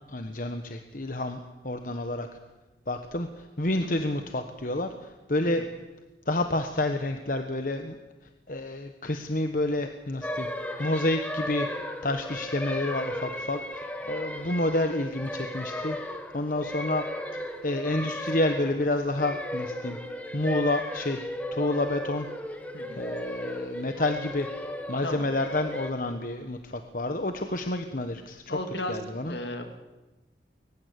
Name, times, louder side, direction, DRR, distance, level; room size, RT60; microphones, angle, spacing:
voice 1, 0.1-1.4 1.6-2.3 2.9-3.3 3.6-4.9 5.3-5.6 6.3-8.0 8.5-10.5 10.8-11.7 12.0-16.0 16.3-17.0 17.3-20.0 20.3-21.2 21.5-22.3 23.0-28.6 28.9-29.4, left 2 dB, 50° left, 7 dB, 1.3 m, -29 dB
sound 1, 10.2-25.9, left 1 dB, 10° left, 1.6 m, -35 dB
voice 2, 28.5-29.8, left 1 dB, 70° left, 6 dB, 3.0 m, -35 dB
22.5 x 20.0 x 8.2 m, 1.1 s
head